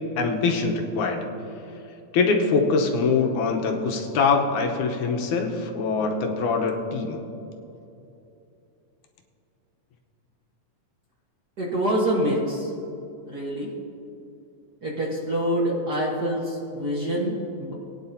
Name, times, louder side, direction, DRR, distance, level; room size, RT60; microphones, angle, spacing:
voice 1, 0.2-1.2 2.1-7.2, left 4 dB, 80° left, 2 dB, 2.4 m, -23 dB
voice 2, 11.6-12.7 13.2-13.7 14.8-17.7, equal, 45° right, -4 dB, 1.5 m, -26 dB
20.5 x 9.8 x 2.8 m, 2.8 s
omnidirectional pair, 3.4 m